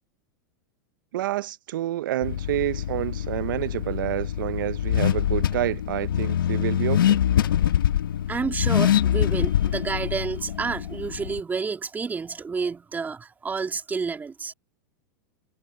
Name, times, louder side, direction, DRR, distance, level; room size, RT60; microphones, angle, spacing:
voice 1, 1.1-7.2, right 14 dB, 75° right, 0.6 m, -28 dB
Car / Accelerating revving vroom, 2.2-11.4, left 10 dB, 85° left, 1.2 m, -24 dB
voice 2, 8.3-14.5, right 5 dB, 15° right, 2.6 m, -30 dB
hypercardioid pair, 120°, 11 cm